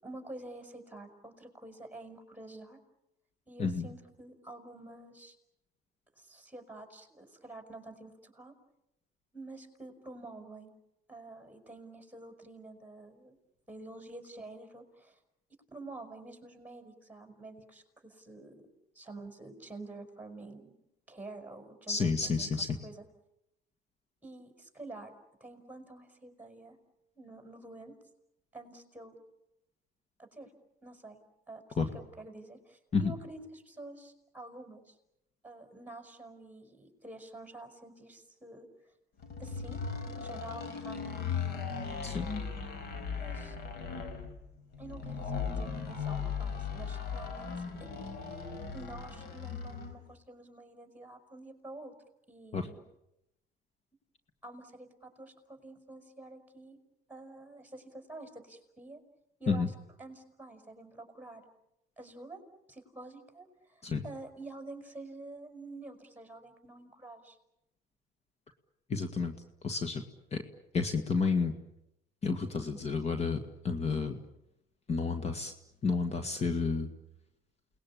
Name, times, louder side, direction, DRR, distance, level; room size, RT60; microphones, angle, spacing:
voice 1, 0.0-2.8 3.5-5.3 6.2-8.5 9.3-10.7 11.1-13.4 13.7-15.2 15.7-18.6 19.0-20.7 21.1-22.5 22.8-23.0 24.2-25.1 25.4-26.8 27.2-27.9 28.5-29.1 30.2-30.5 30.8-31.2 31.5-35.0 35.4-38.7 39.4-39.8 40.0-41.4 42.9-43.6 44.8-47.5 47.8-48.0 48.7-51.9 52.3-52.8 54.4-56.8 57.1-59.0 59.4-59.7 60.0-61.4 62.0-62.4 62.7-67.4, right 2 dB, 10° right, 5 dB, 5.3 m, -48 dB
voice 2, 21.9-22.8 31.8-31.9 32.9-33.1 42.0-42.3 52.5-52.7 59.5-59.7 63.8-64.0 68.9-69.3 69.6-70.0 70.3-70.4 70.7-71.5 72.2-74.2 74.9-75.5 75.8-76.9, left 4 dB, 40° left, 7 dB, 1.9 m, -30 dB
sound 1, 39.2-50.0, left 6 dB, 70° left, 4.4 m, -37 dB
29.0 x 20.0 x 8.7 m, 0.85 s
cardioid pair, 110°, 17 cm